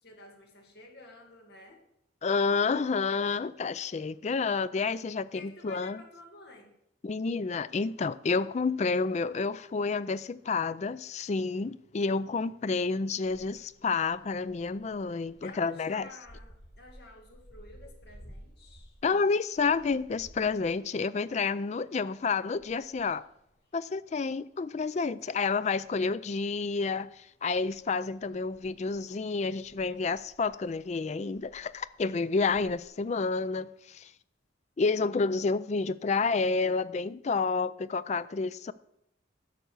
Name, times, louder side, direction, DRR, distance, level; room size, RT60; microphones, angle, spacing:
voice 1, 0.0-1.8 5.3-6.8 15.4-19.0, left 2 dB, 55° left, 2.2 m, -51 dB
voice 2, 2.2-6.0 7.0-16.1 19.0-23.2 23.7-34.1 34.8-38.7, left 4 dB, 35° left, 0.3 m, -29 dB
sound 1, 13.2-24.8 25.1-26.4 26.7-32.9, equal, 75° left, 5.3 m, -56 dB
11.5 x 6.8 x 6.2 m
head